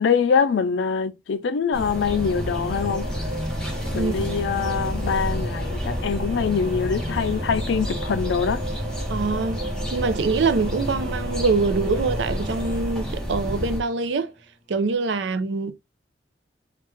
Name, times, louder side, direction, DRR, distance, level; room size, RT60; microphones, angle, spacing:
voice 1, 0.0-3.1 3.9-8.6, left 6 dB, 75° left, 0.4 m, -24 dB
sound 1, 1.7-13.8, equal, 5° left, 0.8 m, -30 dB
Singing / Musical instrument, 1.8-14.4, equal, 40° right, 1.0 m, -34 dB
voice 2, 4.0-4.3 9.1-9.6 9.9-14.3 14.7-15.7, right 4 dB, 75° right, 0.5 m, -24 dB
3.1 x 2.4 x 3.3 m
head